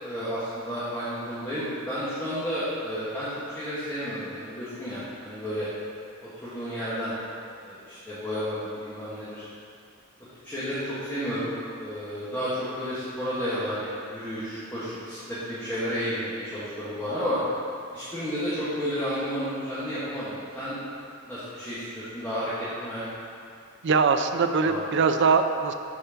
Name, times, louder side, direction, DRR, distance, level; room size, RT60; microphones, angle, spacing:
voice 1, 0.0-5.7 6.2-7.1 7.6-9.5 10.4-11.5 11.8-12.5 12.8-17.4 17.9-20.8 21.3-22.5 22.8-23.0 24.6-25.0, equal, 10° left, -14 dB, 1.7 m, -32 dB
voice 2, 23.8-25.7, right 5 dB, 60° right, 7 dB, 0.4 m, -22 dB
8.6 x 4.5 x 5.8 m, 2.3 s
head